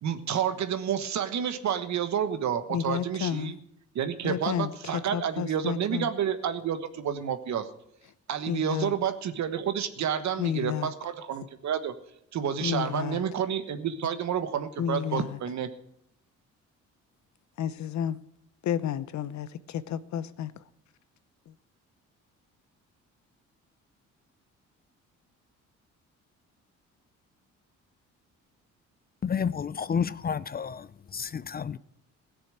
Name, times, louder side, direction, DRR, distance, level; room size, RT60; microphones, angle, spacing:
voice 1, 0.0-3.5 3.9-7.7 8.3-11.9 12.3-15.7, right 8 dB, 65° right, 1.4 m, -30 dB
voice 2, 2.7-3.5 4.2-6.1 8.5-8.9 10.4-10.9 12.6-13.2 14.8-15.4 17.6-18.2 18.6-20.6 21.5-21.6, left 9 dB, 65° left, 0.8 m, -31 dB
voice 3, 29.2-30.9 31.1-31.8, left 7 dB, 30° left, 0.5 m, -30 dB
16.5 x 6.9 x 7.9 m
cardioid pair, 90°, 30 cm